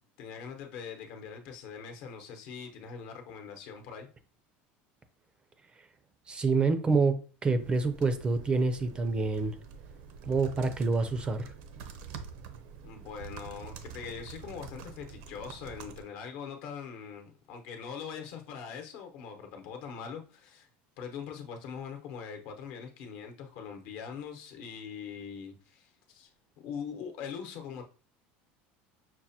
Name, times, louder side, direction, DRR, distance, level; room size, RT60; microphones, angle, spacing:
voice 1, 0.2-4.1 12.8-20.7 21.0-26.3 26.6-27.8, left 7 dB, 65° left, 0.8 m, -42 dB
voice 2, 6.3-9.5 10.3-11.5, right 4 dB, 20° right, 0.4 m, -27 dB
sound 1, 7.6-16.0, right 6 dB, 70° right, 0.5 m, -46 dB
5.9 x 2.1 x 2.7 m
cardioid pair, 145°, 5 cm